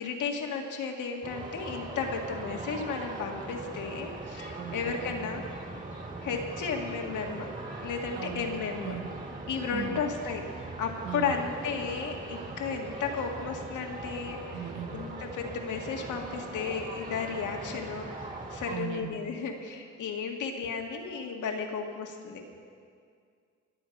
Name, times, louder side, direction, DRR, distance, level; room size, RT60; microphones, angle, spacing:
voice 1, 0.0-5.7 6.2-7.5 7.8-9.0 9.5-14.7 14.9-22.4, left 5 dB, 80° left, 2 dB, 1.9 m, -34 dB
sound 1, 1.2-18.8, right 2 dB, 25° right, 2.3 m, -40 dB
voice 2, 4.6-5.1 8.1-9.1 9.7-10.1 11.0-11.4 14.5-15.1 18.7-19.2, right 9 dB, 75° right, 7 dB, 1.2 m, -39 dB
23.0 x 8.1 x 5.3 m, 2.2 s
cardioid pair, 90°, 30 cm